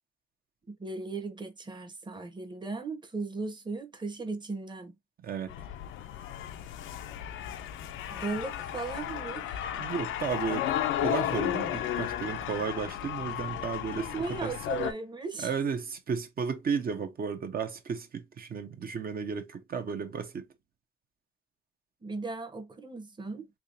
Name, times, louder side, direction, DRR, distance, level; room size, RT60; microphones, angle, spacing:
voice 1, 0.7-4.9 8.1-9.6 14.0-15.5 22.0-23.5, right 3 dB, 20° right, 1.0 m, -37 dB
voice 2, 5.2-5.5 9.8-10.7 11.0-14.5 15.4-20.4, right 6 dB, 50° right, 0.9 m, -33 dB
sound 1, 5.5-14.9, left 11 dB, 80° left, 0.6 m, -34 dB
3.5 x 2.9 x 2.6 m
cardioid pair, 90°, 20 cm